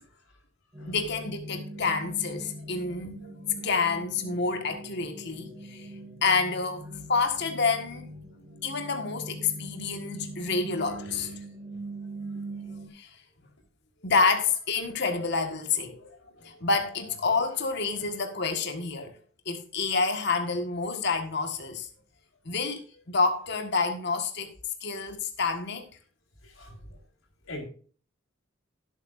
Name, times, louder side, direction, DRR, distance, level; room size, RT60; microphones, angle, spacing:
sound 1, 0.7-12.9, right 1 dB, 20° right, 5.3 m, -42 dB
voice 1, 0.9-3.3 3.6-5.9 6.2-8.1 8.6-11.3 12.9-13.1 14.0-16.1 16.4-19.1 19.4-21.9 22.4-22.8 23.1-24.5 24.8-25.9 26.6-26.7, left 4 dB, 55° left, 1.7 m, -28 dB
voice 2, 10.8-11.4 14.0-14.2 16.1-16.5 17.9-18.1 23.3-23.4 26.4-26.8 27.5-27.7, left 1 dB, 85° left, 4.6 m, -45 dB
16.5 x 8.2 x 2.6 m
head